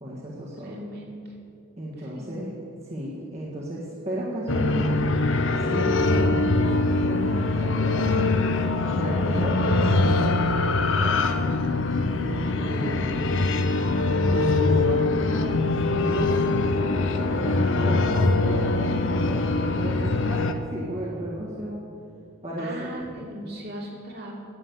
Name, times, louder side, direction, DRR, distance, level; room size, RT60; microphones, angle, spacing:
voice 1, 0.0-0.7 1.8-2.5 2.8-5.1 5.6-8.5 8.8-11.5 12.2-13.4 14.3-15.6 15.9-21.8 22.4-22.8, equal, 30° right, -6 dB, 1.7 m, -33 dB
voice 2, 0.6-1.3 2.0-2.3 19.8-20.2 22.6-24.3, equal, 50° right, -2 dB, 2.7 m, -38 dB
sound 1, 4.5-20.5, left 3 dB, 65° left, 0.8 m, -23 dB
11.0 x 8.8 x 8.2 m, 2.5 s
head